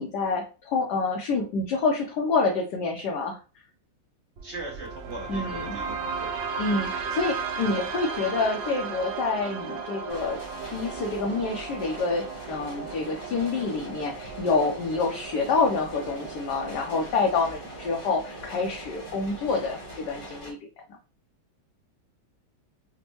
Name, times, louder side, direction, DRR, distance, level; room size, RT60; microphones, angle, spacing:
voice 1, 0.0-3.4 5.3-5.8 6.6-10.4 10.7-20.6, left 4 dB, 70° left, 1 dB, 1.1 m, -27 dB
voice 2, 4.4-6.3, right 2 dB, 45° right, -1 dB, 1.0 m, -39 dB
sound 1, 4.4-20.4, right 5 dB, 75° right, 1.4 m, -36 dB
sound 2, 10.1-20.5, equal, 25° left, 0.7 m, -42 dB
5.1 x 2.2 x 2.9 m, 0.33 s
omnidirectional pair, 2.1 m